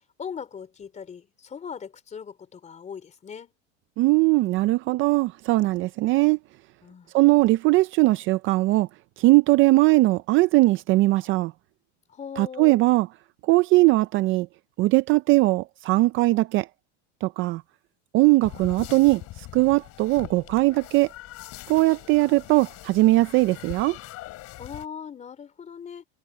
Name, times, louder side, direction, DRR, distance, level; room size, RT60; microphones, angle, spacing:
voice 1, 0.0-3.5 6.8-7.1 12.1-12.8 24.6-26.1, left 7 dB, 20° left, 3.5 m, -39 dB
voice 2, 4.0-6.4 7.1-8.9 9.2-11.5 12.4-13.1 13.4-14.5 14.8-16.7 17.2-17.6 18.1-21.1 21.7-24.0, right 20 dB, 35° right, 0.4 m, -20 dB
sound 1, 18.4-24.9, left 17 dB, 45° left, 4.1 m, -42 dB
supercardioid pair, 145°, 35 cm